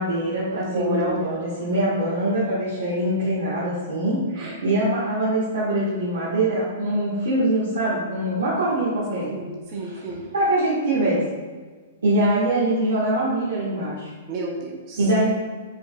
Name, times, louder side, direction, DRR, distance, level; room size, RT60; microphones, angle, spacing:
voice 1, 0.0-9.3 9.8-10.0 10.3-11.2 12.0-14.1 15.0-15.4, right 1 dB, 75° right, -9 dB, 1.2 m, -23 dB
voice 2, 0.7-1.4 4.4-4.6 9.2-10.3 14.3-15.1, right 3 dB, 40° right, -1 dB, 0.8 m, -31 dB
4.7 x 4.6 x 2.2 m, 1.4 s
figure-of-eight pair, 110°, 0 cm